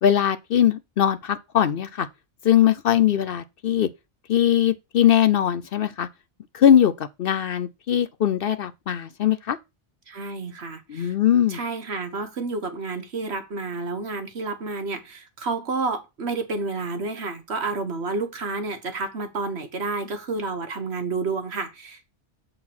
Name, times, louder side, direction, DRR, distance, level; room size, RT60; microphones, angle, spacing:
voice 1, 0.0-2.1 2.4-3.9 4.3-6.1 6.5-9.6 10.9-11.6, left 10 dB, 60° left, 0.7 m, -20 dB
voice 2, 10.1-11.1 11.5-22.1, right 3 dB, 65° right, 1.6 m, -30 dB
7.7 x 4.2 x 5.9 m
omnidirectional pair, 1.2 m